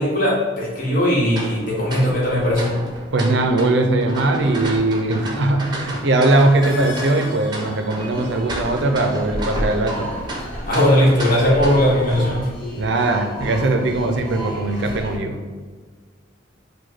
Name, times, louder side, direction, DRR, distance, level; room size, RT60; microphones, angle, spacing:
voice 1, 0.0-2.8 10.6-12.4, equal, 45° left, -6 dB, 1.4 m, -18 dB
sound 1, 1.3-12.1, right 1 dB, 20° right, 0.7 m, -32 dB
voice 2, 3.1-10.1 12.8-15.4, right 2 dB, 60° right, 5 dB, 0.5 m, -20 dB
sound 2, 6.4-8.7, left 3 dB, 65° left, 0.6 m, -37 dB
sound 3, 8.0-15.2, equal, 5° left, 1.3 m, -32 dB
4.8 x 2.2 x 4.4 m, 1.5 s
head